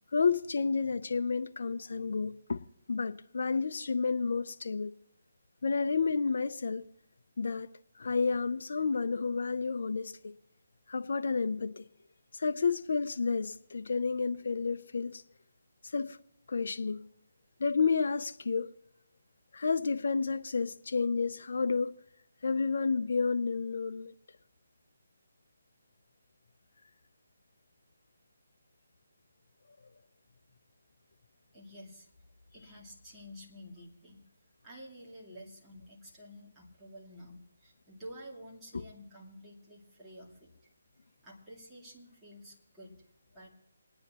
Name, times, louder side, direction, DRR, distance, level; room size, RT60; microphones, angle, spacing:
voice 1, 0.1-2.6 2.9-4.9 5.6-6.9 7.4-7.7 8.0-10.3 10.9-11.9 12.3-15.2 15.8-16.2 16.5-17.0 17.6-18.7 19.5-21.9 22.4-24.1, left 4 dB, 65° left, 0.6 m, -30 dB
voice 2, 31.5-32.1 32.5-34.2 34.6-40.5 41.2-42.9 43.3-43.5, equal, 5° right, 2.5 m, -50 dB
28.5 x 9.8 x 3.0 m
hypercardioid pair, 160°, 0 cm